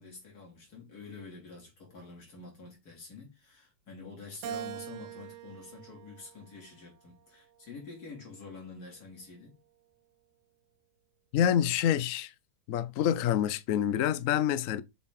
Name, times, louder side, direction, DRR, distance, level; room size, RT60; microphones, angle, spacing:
voice 1, 0.0-9.6, left 4 dB, 50° left, 3.4 m, -47 dB
Keyboard (musical), 4.4-6.9 7.5-8.7, right 9 dB, 75° right, 1.0 m, -44 dB
voice 2, 11.3-12.3 12.7-14.8, left 10 dB, 85° left, 0.7 m, -27 dB
7.1 x 4.2 x 3.7 m
omnidirectional pair, 2.2 m